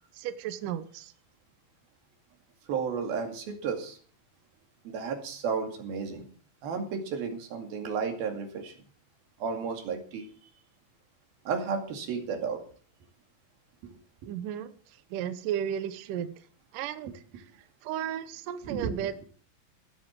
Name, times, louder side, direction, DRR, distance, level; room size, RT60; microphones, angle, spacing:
voice 1, 0.2-1.1 14.3-14.7 15.1-16.3 16.7-17.1 17.8-19.1, right 10 dB, 75° right, 11 dB, 2.3 m, -34 dB
voice 2, 2.7-4.0 4.9-6.3 6.6-8.7 9.4-10.3 11.5-12.6 13.8-14.0 18.6-19.3, right 5 dB, 90° right, 4 dB, 4.2 m, -33 dB
16.5 x 8.4 x 7.4 m, 0.43 s
omnidirectional pair, 4.2 m